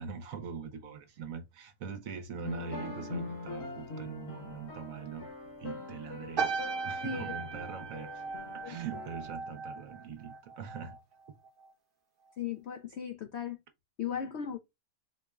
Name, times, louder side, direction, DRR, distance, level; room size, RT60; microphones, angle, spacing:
voice 1, 0.0-5.3 5.6-6.5 6.8-8.2 8.5-11.0, right 6 dB, 65° right, 1.1 m, -42 dB
sound 1, 2.4-9.4, left 3 dB, 45° left, 1.1 m, -43 dB
sound 2, 6.4-11.0 11.3-11.7, right 5 dB, 40° right, 1.0 m, -37 dB
voice 2, 7.0-7.3 8.6-8.8 12.4-13.6 14.0-14.6, left 7 dB, 70° left, 0.6 m, -37 dB
4.4 x 2.1 x 3.4 m
omnidirectional pair, 1.7 m